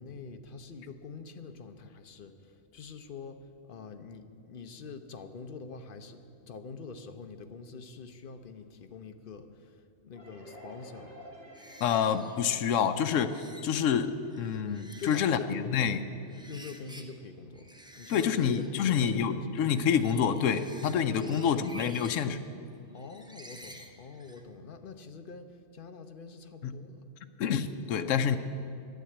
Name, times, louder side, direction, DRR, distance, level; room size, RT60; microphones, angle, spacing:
voice 1, 0.0-11.2 15.0-16.0 16.5-17.7 18.0-19.6 21.3-21.6 22.9-27.0, left 5 dB, 50° left, 8 dB, 0.8 m, -45 dB
sound 1, 10.1-13.6, equal, 30° right, 4.6 m, -51 dB
sound 2, 11.5-13.9 14.2-17.3 17.5-24.5, equal, 5° right, 0.6 m, -52 dB
voice 2, 11.8-15.4 15.7-16.0 18.1-22.4 26.6-26.8 27.4-28.4, left 7 dB, 75° left, 9 dB, 1.0 m, -27 dB
11.5 x 9.4 x 8.6 m, 2.5 s
omnidirectional pair, 1.3 m